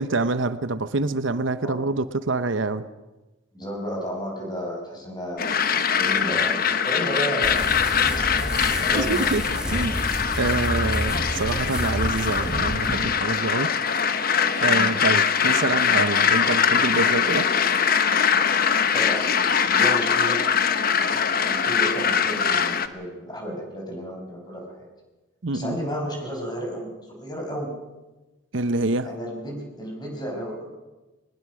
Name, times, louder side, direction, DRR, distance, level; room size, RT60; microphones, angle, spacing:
voice 1, 0.0-2.8 8.9-9.4 9.7-10.0 10.4-13.7 14.3-17.5 25.4-25.8 28.5-29.1, right 3 dB, 70° right, 12 dB, 0.8 m, -26 dB
voice 2, 3.5-7.9 8.8-9.3 9.6-9.9 14.7-14.9 18.9-20.4 20.8-24.9 25.5-27.7 29.0-30.6, equal, 20° left, 1 dB, 5.8 m, -32 dB
sound 1, 5.4-22.9, left 7 dB, 45° left, 1.0 m, -22 dB
plastic bag, 7.4-13.0, equal, 5° right, 2.5 m, -30 dB
22.0 x 20.5 x 6.3 m, 1.1 s
head